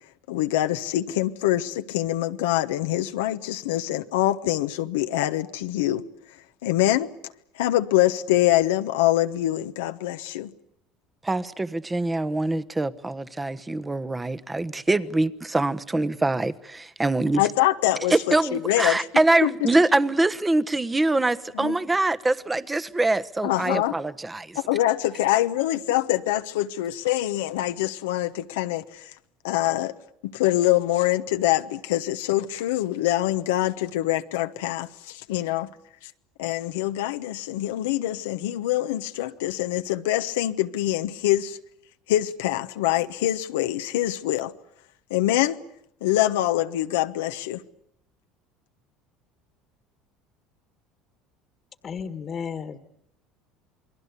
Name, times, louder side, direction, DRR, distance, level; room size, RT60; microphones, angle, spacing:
voice 1, 0.3-6.0 6.6-7.1 7.6-10.5 17.4-19.0 19.4-19.5 21.5-21.8 23.4-23.9 24.5-29.1 29.4-29.9 30.2-35.7 36.4-41.6 42.1-44.5 45.1-45.6 46.0-47.6, left 14 dB, 90° left, 1.1 m, -24 dB
voice 2, 11.2-17.4 18.1-24.6, right 2 dB, 15° right, 1.2 m, -24 dB
voice 3, 51.8-52.8, left 6 dB, 40° left, 1.7 m, -33 dB
29.0 x 21.5 x 8.3 m
supercardioid pair, 95°, 0 cm